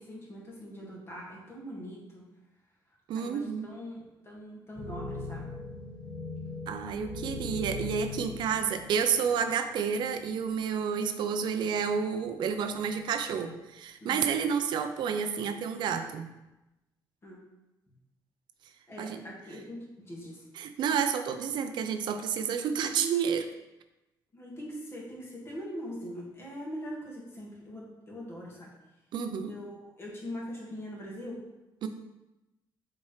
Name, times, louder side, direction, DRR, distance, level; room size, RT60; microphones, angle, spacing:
voice 1, 0.0-2.2 3.2-4.0 4.2-5.5 14.0-14.3 17.2-17.4 18.9-20.4 24.3-28.7 29.5-31.4, equal, 30° left, -4 dB, 1.8 m, -42 dB
voice 2, 3.1-3.7 6.7-16.3 19.0-19.2 20.6-23.5 29.1-29.5 31.8-31.9, right 7 dB, 70° right, 8 dB, 0.5 m, -30 dB
sound 1, 4.7-9.5 10.2-10.3 11.6-12.1 12.7-13.2, left 2 dB, 5° right, 1.9 m, -39 dB
7.2 x 4.3 x 3.2 m, 0.98 s
cardioid pair, 140°, 8 cm